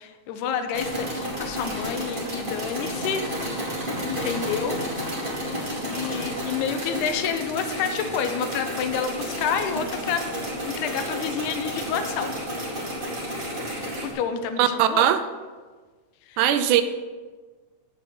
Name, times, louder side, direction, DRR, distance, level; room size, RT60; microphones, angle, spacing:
voice 1, 0.0-3.3 4.0-4.8 5.5-10.3 10.6-12.3 13.7-15.1 16.3-16.4, left 7 dB, 85° left, 8 dB, 2.2 m, -29 dB
sound 1, 0.7-14.1, equal, 20° right, 2.0 m, -31 dB
voice 2, 14.6-15.2 16.4-16.8, right 10 dB, 90° right, 10 dB, 2.2 m, -19 dB
8.7 x 6.7 x 6.1 m, 1.4 s
omnidirectional pair, 3.5 m